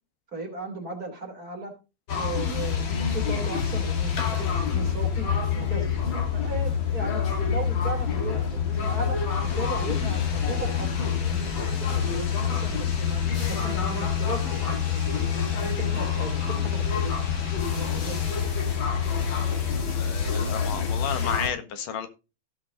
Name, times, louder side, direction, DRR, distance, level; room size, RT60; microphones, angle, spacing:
voice 1, 0.3-1.7 2.1-5.3 5.5-5.9 6.3-13.2 13.5-17.4 17.7-18.4, right 2 dB, 25° right, 2 dB, 3.3 m, -37 dB
sound 1, 2.1-21.5, left 7 dB, 45° left, 1.9 m, -26 dB
voice 2, 19.9-22.1, left 8 dB, 70° left, 8 dB, 2.9 m, -32 dB
16.0 x 5.8 x 3.8 m, 0.29 s
omnidirectional pair, 4.2 m